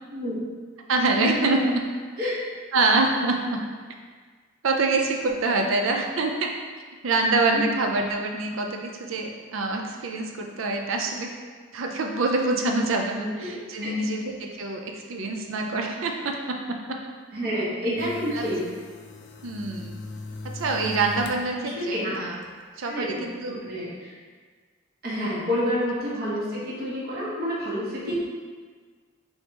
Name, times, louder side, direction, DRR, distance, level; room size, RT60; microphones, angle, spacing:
voice 1, 0.9-1.8 2.7-3.6 4.6-6.5 7.0-11.3 11.7-17.0 18.3-18.4 19.4-20.0 20.4-22.4 22.8-23.6 25.2-25.3 28.1-28.2, right 3 dB, 85° right, 2 dB, 0.5 m, -26 dB
voice 2, 13.1-13.9 17.3-18.6 21.6-22.1 22.9-23.2 23.5-24.1 25.0-28.2, equal, 50° right, -7 dB, 1.2 m, -29 dB
sound 1, 18.0-21.5 21.9-22.6, left 2 dB, 60° left, 0.4 m, -39 dB
3.4 x 2.7 x 4.5 m, 1.5 s
head